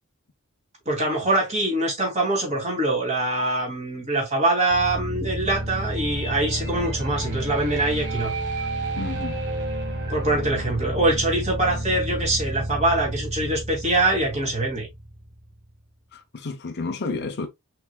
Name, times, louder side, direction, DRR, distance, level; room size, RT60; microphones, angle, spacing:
voice 1, 0.9-8.3 10.1-14.9, right 2 dB, 30° right, 2.5 m, -24 dB
sound 1, 4.7-15.6, right 1 dB, 55° right, 1.7 m, -30 dB
voice 2, 9.0-9.4 16.1-17.5, left 3 dB, 50° left, 0.7 m, -31 dB
5.8 x 3.4 x 2.3 m
head